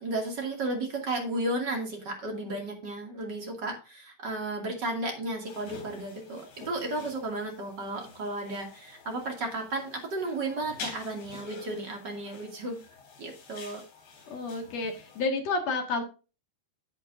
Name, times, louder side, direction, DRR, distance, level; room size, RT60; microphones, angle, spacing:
voice 1, 0.0-12.8 13.2-13.8, right 2 dB, 35° right, 1 dB, 2.1 m, -33 dB
sound 1, 5.4-15.2, left 4 dB, 75° left, 5.4 m, -48 dB
voice 2, 14.3-16.0, left 3 dB, 50° left, 4 dB, 2.3 m, -30 dB
12.5 x 8.4 x 2.6 m, 0.32 s
omnidirectional pair, 5.0 m